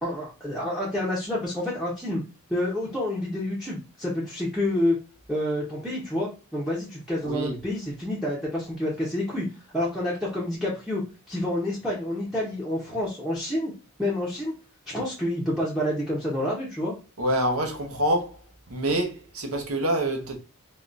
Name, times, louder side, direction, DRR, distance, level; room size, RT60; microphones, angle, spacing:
voice 1, 0.0-2.2 2.5-5.0 5.3-9.5 9.7-13.7 14.0-14.5 14.9-16.9, left 1 dB, ahead, 0.7 m, -28 dB
voice 2, 7.2-7.6 17.2-18.4 18.7-20.4, right 1 dB, 75° right, 0.8 m, -26 dB
3.6 x 2.3 x 2.5 m
head